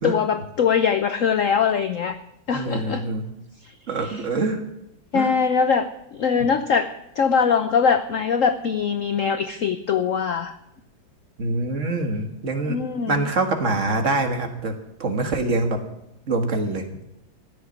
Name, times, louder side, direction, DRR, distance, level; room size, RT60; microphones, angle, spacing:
voice 1, 0.0-2.2 2.5-3.0 4.0-4.2 5.1-10.5 12.7-13.3, left 6 dB, 65° left, 10 dB, 0.8 m, -22 dB
voice 2, 2.5-3.3 3.9-4.6 5.1-5.3 11.4-14.7 15.0-15.8 16.3-16.8, right 2 dB, 40° right, 5 dB, 1.9 m, -25 dB
15.0 x 6.9 x 9.7 m, 0.84 s
omnidirectional pair, 2.1 m